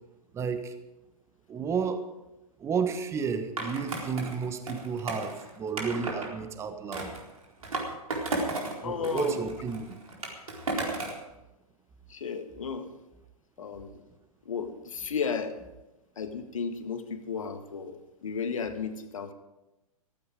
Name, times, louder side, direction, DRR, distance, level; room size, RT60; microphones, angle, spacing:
voice 1, 0.3-0.7 1.5-2.0 2.6-7.1 8.8-9.9, right 6 dB, 15° right, 9 dB, 1.2 m, -31 dB
Skateboard, 3.6-6.3 6.9-8.8 9.0-11.2, right 2 dB, 70° right, 4.2 m, -34 dB
voice 2, 8.8-9.5 12.1-12.9 13.6-13.9 14.5-15.6 16.2-19.3, left 6 dB, 60° left, 8 dB, 1.7 m, -34 dB
15.0 x 15.0 x 5.1 m, 0.97 s
figure-of-eight pair, 115°, 19 cm